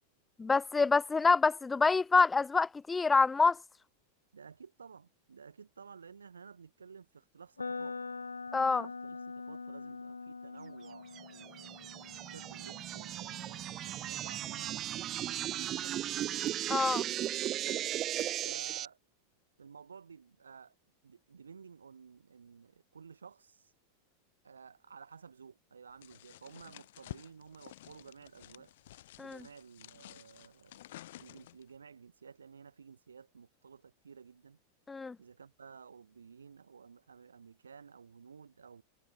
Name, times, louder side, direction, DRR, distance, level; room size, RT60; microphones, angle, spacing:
voice 1, 0.4-3.6 8.5-8.9 16.7-17.0 29.2-29.4 34.9-35.2, left 4 dB, 10° left, 0.3 m, -26 dB
voice 2, 4.3-8.0 8.7-11.8 12.2-14.9 15.2-16.2 18.3-19.0 19.6-20.7 21.0-23.7 24.4-28.7 29.2-30.8 31.2-34.6 35.2-38.8, right 6 dB, 70° right, 6.1 m, -54 dB
sound 1, 7.6-15.5, left 4 dB, 80° left, 2.7 m, -45 dB
sound 2, 11.1-18.9, right 12 dB, 30° right, 1.5 m, -36 dB
sound 3, 26.0-31.7, left 14 dB, 55° left, 3.0 m, -52 dB
figure-of-eight pair, 90°, 0 cm